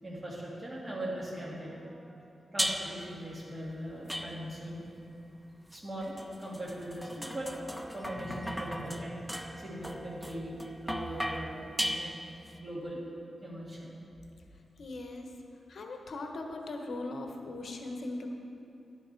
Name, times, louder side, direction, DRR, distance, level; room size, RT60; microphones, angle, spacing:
voice 1, 0.0-4.8 5.7-7.6 7.9-9.2 9.6-12.1 12.6-13.0 13.4-13.9, right 1 dB, 20° right, -6 dB, 3.0 m, -40 dB
sound 1, 2.6-3.1 4.1-4.8 5.7-12.5, equal, 5° right, 0.6 m, -37 dB
voice 2, 14.8-15.3 15.7-18.3, left 2 dB, 65° left, 3 dB, 1.1 m, -39 dB
12.5 x 10.5 x 4.6 m, 2.7 s
wide cardioid pair, 105°, 0 cm